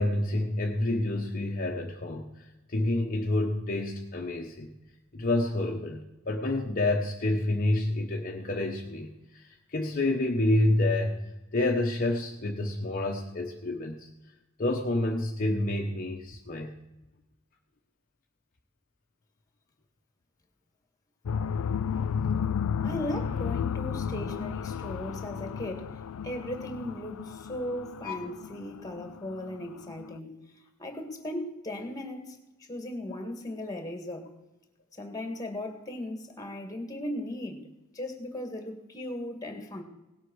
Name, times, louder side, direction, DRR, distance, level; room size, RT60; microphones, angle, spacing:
voice 1, 0.0-2.4 2.7-4.7 5.1-9.4 9.7-11.2 11.5-14.1 14.6-16.8 28.0-28.2, left 1 dB, 40° left, 0 dB, 1.1 m, -28 dB
sound 1, 21.3-30.1, left 7 dB, 75° left, 0.4 m, -33 dB
voice 2, 22.8-30.4 30.8-34.3 34.9-37.7 37.9-39.8, left 1 dB, 15° left, 5 dB, 2.0 m, -37 dB
18.0 x 8.2 x 6.3 m, 1.0 s
head